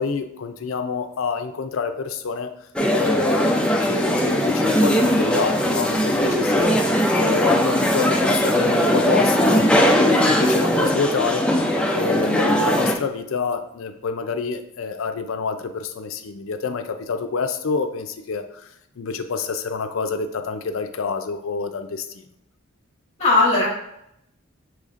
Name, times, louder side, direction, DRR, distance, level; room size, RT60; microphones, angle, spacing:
voice 1, 0.0-2.5 2.9-6.7 7.2-11.6 11.9-18.7 19.0-22.3, left 5 dB, 70° left, 7 dB, 0.5 m, -27 dB
sound 1, 2.8-13.0, equal, 5° left, 0.4 m, -19 dB
voice 2, 12.2-12.6 23.2-23.7, left 2 dB, 35° left, -5 dB, 1.1 m, -19 dB
6.4 x 3.1 x 2.5 m, 0.77 s
head